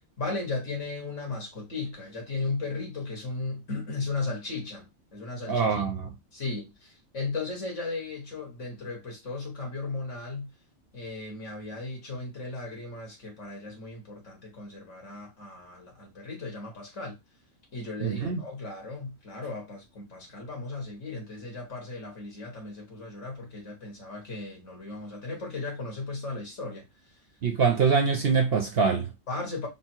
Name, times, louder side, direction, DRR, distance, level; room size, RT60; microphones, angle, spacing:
voice 1, 0.2-5.9 6.3-10.5 10.9-17.2 17.7-26.9 29.3-29.7, left 3 dB, 60° left, 1.9 m, -36 dB
voice 2, 5.5-6.1 18.0-18.4 27.4-29.1, right 5 dB, 55° right, 0.8 m, -24 dB
4.2 x 2.0 x 4.3 m
omnidirectional pair, 1.4 m